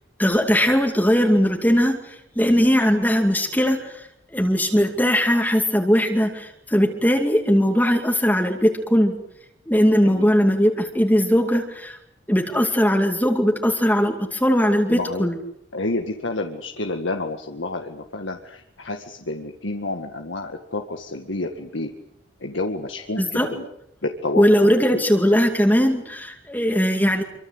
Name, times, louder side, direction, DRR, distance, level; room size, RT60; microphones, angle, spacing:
voice 1, 0.2-4.1 4.3-9.2 9.7-12.0 12.3-15.4 23.2-23.5 24.3-27.2, equal, 10° left, 2 dB, 2.4 m, -19 dB
voice 2, 14.9-15.3 15.7-21.9 22.4-23.6 24.0-25.0, left 2 dB, 85° left, 4 dB, 2.0 m, -29 dB
26.5 x 25.0 x 8.1 m, 0.77 s
head